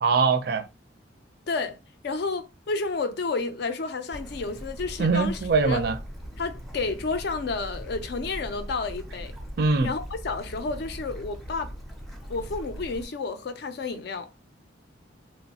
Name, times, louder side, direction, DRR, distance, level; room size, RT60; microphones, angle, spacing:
voice 1, 0.0-0.6 5.0-6.0 9.6-9.9, right 4 dB, 55° right, 0.4 m, -22 dB
voice 2, 1.5-1.8 2.0-5.8 6.4-9.3 9.8-11.7 12.3-14.3, left 3 dB, 55° left, 0.4 m, -31 dB
Bird / Stream, 4.1-13.1, equal, ahead, 0.4 m, -40 dB
2.9 x 2.1 x 2.7 m
head